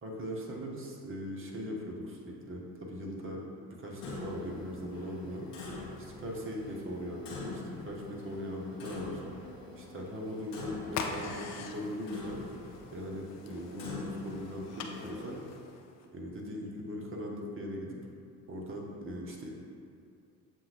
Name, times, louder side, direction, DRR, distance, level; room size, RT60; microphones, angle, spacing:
voice 1, 0.0-5.5 6.0-9.2 9.8-12.4 12.9-15.4 16.1-18.0 18.5-19.5, equal, 25° right, -2 dB, 0.9 m, -39 dB
Clock, 4.0-15.3, left 3 dB, 65° left, 1.0 m, -45 dB
sound 1, 10.9-16.1, left 5 dB, 35° left, 0.4 m, -43 dB
7.2 x 2.6 x 2.8 m, 2.4 s
figure-of-eight pair, 50°, 47 cm